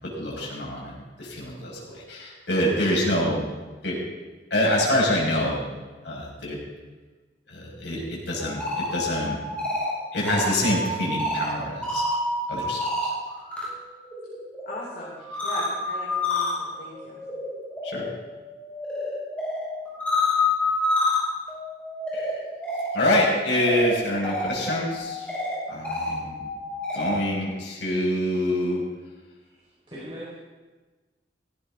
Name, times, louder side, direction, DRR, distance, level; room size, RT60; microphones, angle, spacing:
voice 1, 0.0-3.4 3.8-4.0 4.5-5.6 6.0-6.6 7.5-9.4 10.1-12.0 12.5-13.1 17.8-18.1 22.1-22.3 22.9-25.4 25.7-26.5 26.9-28.8, left 1 dB, 80° left, -3 dB, 5.9 m, -26 dB
sound 1, 8.4-13.6 14.0-27.2, left 2 dB, 10° left, 5.7 m, -29 dB
voice 2, 14.7-15.2 15.4-17.2, left 1 dB, 60° left, -7 dB, 4.4 m, -38 dB
voice 3, 29.4-30.3, equal, 30° right, -8 dB, 4.7 m, -41 dB
17.0 x 16.5 x 3.8 m, 1.3 s
head